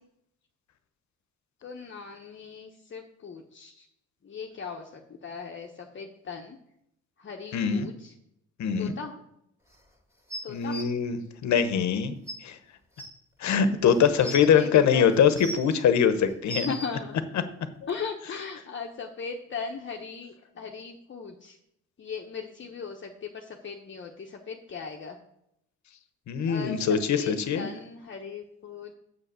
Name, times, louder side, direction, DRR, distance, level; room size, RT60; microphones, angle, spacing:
voice 1, 1.6-3.8 4.2-6.6 7.2-8.1 8.8-9.1 10.4-10.8 14.5-15.2 16.5-17.2 17.9-21.6 22.0-25.2 26.4-28.9, left 5 dB, 40° left, 1 dB, 1.0 m, -38 dB
voice 2, 7.5-7.9 8.6-8.9 10.5-12.2 12.4-12.6 13.4-16.7 26.3-27.7, left 7 dB, 70° left, 11 dB, 1.1 m, -23 dB
sound 1, 10.3-10.8 11.9-12.0 12.3-12.4 13.0-13.1 13.9-14.5 15.1-15.7 16.2-16.9 17.9-18.0, right 1 dB, 10° right, 2.4 m, -37 dB
6.9 x 6.1 x 7.5 m, 0.77 s
cardioid pair, 90°, 30 cm